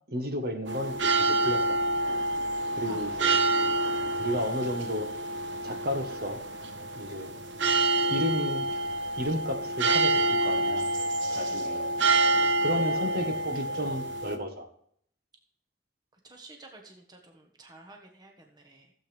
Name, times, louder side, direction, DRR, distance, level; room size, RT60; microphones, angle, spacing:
voice 1, 0.1-1.8 2.7-3.4 4.2-5.1 5.6-6.4 6.9-7.3 8.1-8.7 9.2-10.9 11.4-11.9 12.6-14.7, equal, 50° right, 4 dB, 1.5 m, -32 dB
sound 1, 0.7-14.4, right 2 dB, 75° right, 1.1 m, -27 dB
voice 2, 11.3-11.9 12.3-13.0 16.2-18.9, right 2 dB, 20° right, 2 dB, 1.4 m, -51 dB
15.5 x 8.0 x 3.5 m, 0.63 s
head